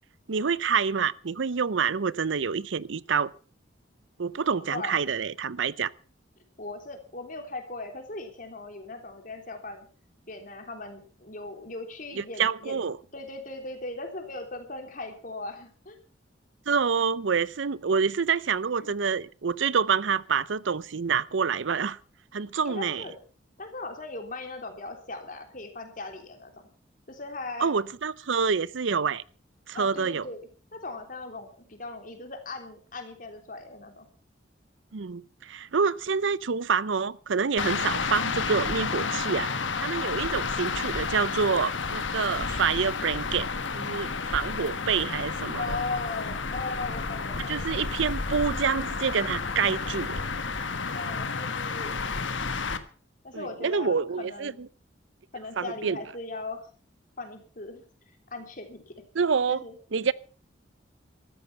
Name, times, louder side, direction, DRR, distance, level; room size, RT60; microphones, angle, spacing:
voice 1, 0.3-3.3 4.2-5.9 12.2-13.0 16.7-22.0 22.3-23.0 27.6-29.2 29.7-30.3 34.9-39.5 39.8-43.5 43.7-45.6 47.5-50.2 53.3-54.5 55.6-56.0 59.1-59.6 59.9-60.1, right 6 dB, 80° right, 0.6 m, -27 dB
voice 2, 4.4-4.9 6.6-9.9 10.3-12.8 13.1-16.0 18.8-19.0 22.6-23.2 23.6-26.5 27.1-27.7 29.7-34.1 45.6-47.5 50.9-52.1 53.2-54.6 55.3-56.7 57.2-57.8 58.3-59.0 59.5-59.8, left 3 dB, 45° left, 3.3 m, -38 dB
sound 1, 37.6-52.8, left 4 dB, 85° left, 1.4 m, -31 dB
14.0 x 13.5 x 5.7 m
head